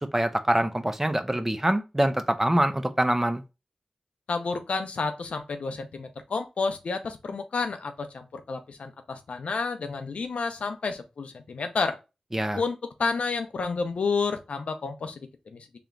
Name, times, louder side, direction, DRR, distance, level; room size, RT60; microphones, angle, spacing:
voice 1, 0.1-3.4 12.3-12.6, right 1 dB, 15° right, 0.6 m, -24 dB
voice 2, 4.3-12.0 12.6-15.2 15.5-15.7, left 4 dB, 85° left, 0.6 m, -30 dB
3.4 x 2.9 x 3.7 m
cardioid pair, 55°, 2 cm